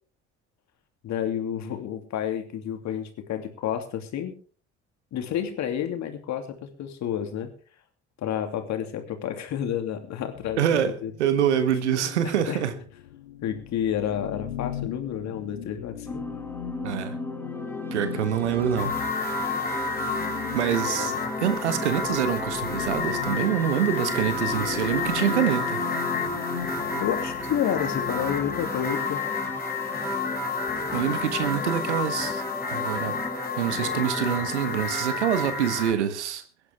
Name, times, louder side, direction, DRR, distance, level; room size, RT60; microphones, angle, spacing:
voice 1, 1.0-4.3 5.1-7.5 8.2-11.1 12.5-12.6 13.4-16.2 20.9-21.2 27.0-29.2, left 9 dB, 55° left, 2.8 m, -30 dB
sound 1, 10.3-28.7, left 11 dB, 80° left, 1.0 m, -39 dB
voice 2, 10.6-12.7 16.8-17.1 17.9-18.9 20.5-25.8 30.9-32.4 32.7-33.2 33.5-36.4, right 9 dB, 80° right, 1.5 m, -26 dB
sound 2, 16.1-34.8, left 1 dB, 5° left, 2.5 m, -36 dB
sound 3, 18.8-35.9, left 4 dB, 25° left, 4.0 m, -30 dB
22.5 x 10.5 x 3.5 m
figure-of-eight pair, 55°, 34 cm